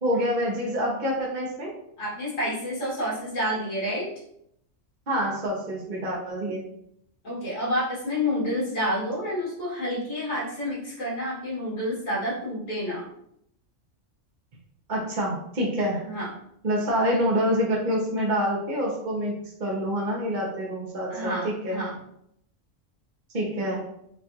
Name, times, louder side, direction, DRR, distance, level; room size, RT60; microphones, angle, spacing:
voice 1, 0.0-1.7 5.1-6.7 14.9-16.0 16.6-21.8 23.3-23.8, equal, 45° right, -3 dB, 0.8 m, -26 dB
voice 2, 2.0-4.1 7.2-13.1 16.1-16.3 21.1-22.0, equal, 80° left, -7 dB, 2.4 m, -29 dB
6.2 x 2.4 x 2.8 m, 0.73 s
omnidirectional pair, 1.3 m